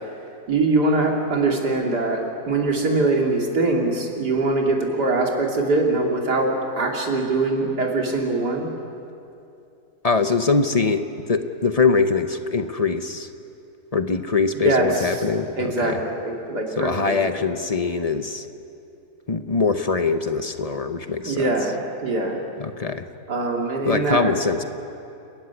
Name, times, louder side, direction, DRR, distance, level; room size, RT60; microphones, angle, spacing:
voice 1, 0.5-8.7 14.6-14.9 15.6-16.0 16.2-17.4 21.3-22.4 23.3-24.3, right 2 dB, 80° right, 0 dB, 3.3 m, -22 dB
voice 2, 10.0-13.3 13.9-16.0 16.8-18.5 19.3-21.5 22.6-23.0 23.8-24.6, left 4 dB, 30° left, 8 dB, 0.7 m, -23 dB
29.5 x 14.0 x 9.7 m, 2.7 s
omnidirectional pair, 1.7 m